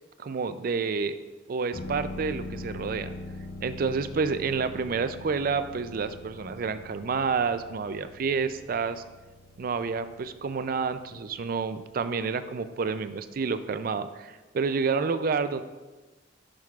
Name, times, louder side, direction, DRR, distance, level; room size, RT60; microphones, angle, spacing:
voice 1, 0.2-1.2 1.5-3.1 3.6-9.0 9.6-15.6, right 5 dB, 50° right, 11 dB, 0.4 m, -29 dB
sound 1, 1.7-13.3 13.6-13.7, left 2 dB, 55° left, 0.4 m, -43 dB
10.0 x 6.3 x 2.4 m, 1.2 s
head